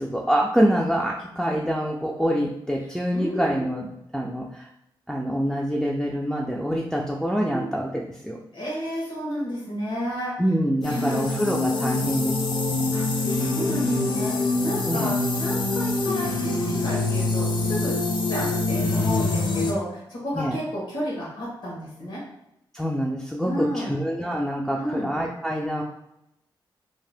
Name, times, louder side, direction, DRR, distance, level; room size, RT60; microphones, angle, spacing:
voice 1, 0.0-4.7 5.1-8.4 10.4-12.4 12.7-13.0 14.9-15.1 20.3-20.6 22.7-25.8, equal, 5° left, -2 dB, 0.3 m, -26 dB
voice 2, 3.1-3.4 7.5-7.7 8.5-10.4 10.9-11.2 11.7-12.2 12.9-18.0 18.3-22.2 23.4-24.0 24.8-25.1, equal, 85° left, -5 dB, 1.1 m, -32 dB
sound 1, 10.8-19.7, left 2 dB, 60° left, 0.5 m, -25 dB
2.7 x 2.1 x 3.3 m, 0.84 s
cardioid pair, 85°, 9 cm